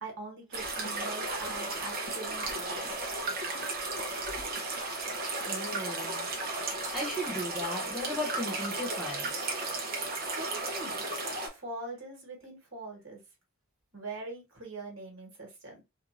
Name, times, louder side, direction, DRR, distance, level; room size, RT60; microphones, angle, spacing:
voice 1, 0.0-3.1 9.8-11.0 11.4-13.2 13.9-15.8, right 3 dB, 60° right, 1.4 m, -43 dB
sound 1, 0.5-11.5, right 2 dB, 40° right, 0.8 m, -34 dB
voice 2, 5.5-6.3 6.9-9.5, left 1 dB, ahead, 0.6 m, -36 dB
3.1 x 2.5 x 2.5 m
head